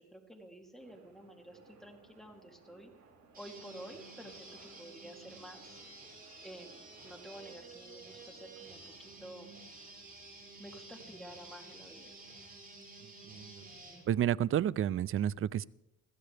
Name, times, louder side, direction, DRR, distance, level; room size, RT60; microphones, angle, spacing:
voice 1, 0.0-2.9 3.4-5.8 6.4-9.5 10.6-12.1, right 1 dB, ahead, 1 dB, 2.9 m, -51 dB
sound 1, 0.8-15.1, right 4 dB, 70° right, 5.3 m, -63 dB
sound 2, 3.3-14.0, right 2 dB, 30° right, 6.5 m, -52 dB
voice 2, 13.0-13.6 14.1-15.6, right 10 dB, 45° right, 22 dB, 0.4 m, -31 dB
22.0 x 15.5 x 3.4 m, 0.83 s
cardioid pair, 90°, 30 cm